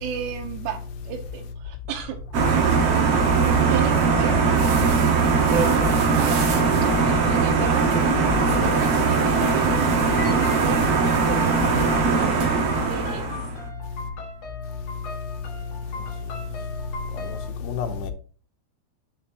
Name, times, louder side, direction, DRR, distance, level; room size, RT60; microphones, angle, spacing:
voice 1, 0.0-2.2 2.5-2.7 3.7-4.6 5.5-6.5 7.3-8.2 8.5-9.7 10.2-12.5 12.9-13.3, right 8 dB, 85° right, 3.0 m, -33 dB
sound 1, 2.3-13.6, right 4 dB, 60° right, 1.7 m, -20 dB
sound 2, 10.1-17.5, left 2 dB, 55° left, 1.8 m, -39 dB
voice 2, 17.1-18.1, left 6 dB, 80° left, 2.7 m, -30 dB
7.6 x 6.7 x 3.0 m
omnidirectional pair, 4.9 m